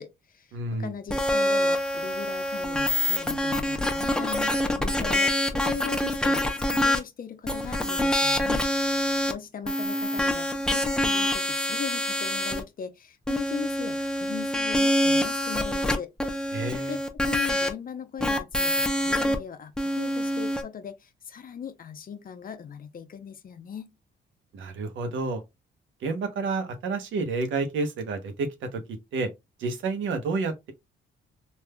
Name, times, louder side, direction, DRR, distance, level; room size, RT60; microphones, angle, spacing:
voice 1, 0.0-9.0 9.2-16.1 16.9-23.9, left 7 dB, 45° left, 0.7 m, -39 dB
voice 2, 0.5-0.9 16.5-17.0 24.5-25.4 26.0-29.3 29.6-30.7, right 3 dB, 75° right, 0.9 m, -30 dB
sound 1, 1.1-7.0 7.5-9.3 9.7-12.6 13.3-17.7 18.2-19.4 19.8-20.6, left 1 dB, 5° left, 0.6 m, -26 dB
3.4 x 2.5 x 2.2 m
cardioid pair, 90°, 20 cm